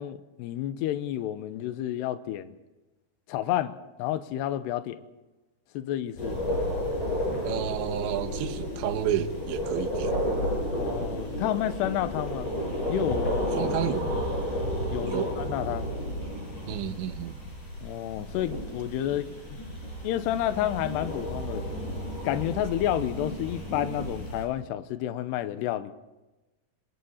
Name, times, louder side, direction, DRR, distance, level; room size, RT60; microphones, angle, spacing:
voice 1, 0.0-2.5 3.3-5.0 5.7-6.4 10.8-12.5 12.9-13.8 14.9-15.9 17.8-19.3 20.0-21.7 22.2-25.9, left 12 dB, 80° left, 3.0 m, -30 dB
sound 1, 6.2-24.5, equal, 45° left, 7.8 m, -32 dB
voice 2, 7.4-10.2 13.6-14.2 15.1-15.3 16.7-17.4, right 10 dB, 85° right, 3.5 m, -31 dB
27.0 x 25.0 x 4.3 m
omnidirectional pair, 5.0 m